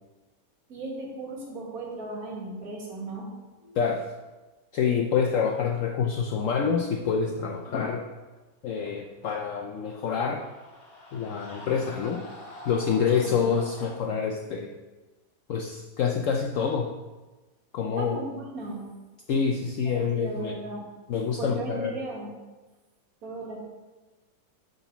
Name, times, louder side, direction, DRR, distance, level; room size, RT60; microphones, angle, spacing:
voice 1, 0.7-3.2 3.6-3.8 18.0-18.9 19.9-20.8 21.4-22.3 23.2-23.6, right 2 dB, 60° right, -2 dB, 1.9 m, -36 dB
voice 2, 3.8-4.1 4.7-8.0 8.6-10.4 11.1-12.2 12.6-14.7 15.5-16.9 17.7-18.2 19.3-20.5 21.1-21.9, left 6 dB, 70° left, 3 dB, 0.7 m, -27 dB
sound 1, 9.6-14.0, left 2 dB, 40° left, 1.6 m, -45 dB
7.0 x 4.0 x 5.7 m, 1.2 s
omnidirectional pair, 1.8 m